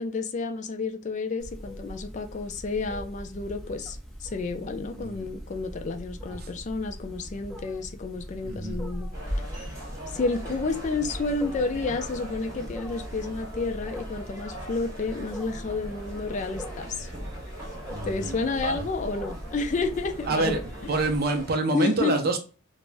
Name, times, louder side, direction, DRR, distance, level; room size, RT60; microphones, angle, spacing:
voice 1, 0.0-9.1 10.1-17.1 18.0-20.9 21.7-22.2, left 3 dB, 35° left, 0.3 m, -30 dB
Wild animals, 1.4-21.2, equal, ahead, 0.7 m, -41 dB
voice 2, 5.0-5.3 6.4-6.5 8.4-8.8 17.9-18.8 20.3-20.6 20.9-22.4, right 3 dB, 45° right, 0.4 m, -27 dB
sound 1, 9.1-21.6, equal, 15° right, 1.5 m, -39 dB
3.3 x 2.0 x 2.5 m
head